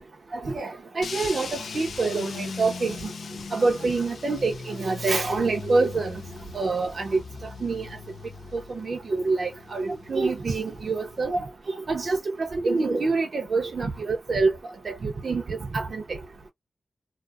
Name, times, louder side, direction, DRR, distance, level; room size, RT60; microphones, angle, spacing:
voice 1, 0.3-3.0 3.5-6.2 6.5-7.2 7.6-7.9 8.5-14.5 14.8-16.0, right 3 dB, 65° right, 0.6 m, -26 dB
sound 1, 1.0-11.2, left 5 dB, 85° left, 0.3 m, -40 dB
2.4 x 2.4 x 2.3 m
cardioid pair, 60°, 0 cm